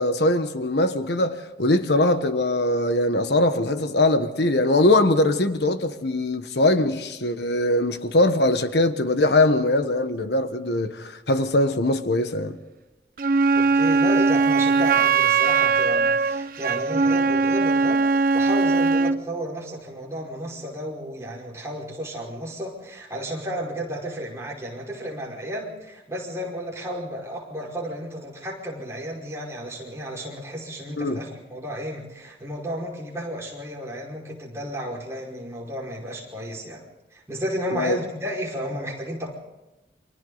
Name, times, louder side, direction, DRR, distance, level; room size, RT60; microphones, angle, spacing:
voice 1, 0.0-12.6 31.0-31.2 37.7-38.0, left 2 dB, 70° left, 1.4 m, -21 dB
Wind instrument woodwind instrument, 13.2-19.2, right 4 dB, 50° right, 0.7 m, -20 dB
voice 2, 13.5-36.8 37.1-39.3, equal, 15° right, 5.3 m, -33 dB
29.0 x 25.5 x 4.1 m
head